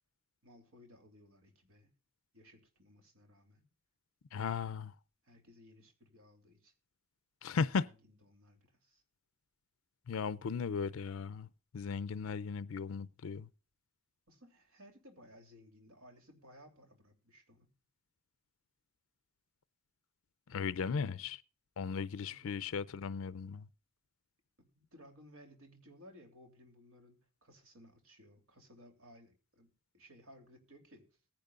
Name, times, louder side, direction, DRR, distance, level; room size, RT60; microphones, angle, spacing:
voice 1, 0.4-1.9 2.3-3.7 5.2-6.7 7.7-9.0 14.3-17.7 20.8-21.3 22.2-22.6 24.6-31.0, equal, 85° right, 3.0 m, -59 dB
voice 2, 4.3-4.9 7.4-7.8 10.1-11.5 11.7-13.5 20.5-21.4 21.8-23.7, left 5 dB, 75° left, 0.5 m, -36 dB
21.5 x 10.5 x 2.4 m
head